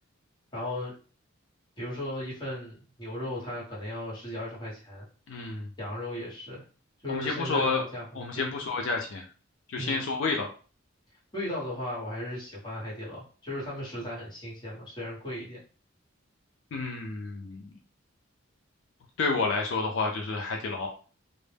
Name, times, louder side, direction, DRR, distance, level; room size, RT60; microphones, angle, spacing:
voice 1, 0.5-0.9 1.8-5.0 5.8-6.6 7.0-8.5 9.8-10.0 11.3-15.6, left 1 dB, 20° left, -6 dB, 1.0 m, -36 dB
voice 2, 5.3-5.7 7.1-7.8 8.1-9.2 9.7-10.5 16.7-17.7 19.2-20.9, left 4 dB, 65° left, 1 dB, 0.3 m, -30 dB
2.0 x 2.0 x 3.2 m, 0.38 s
head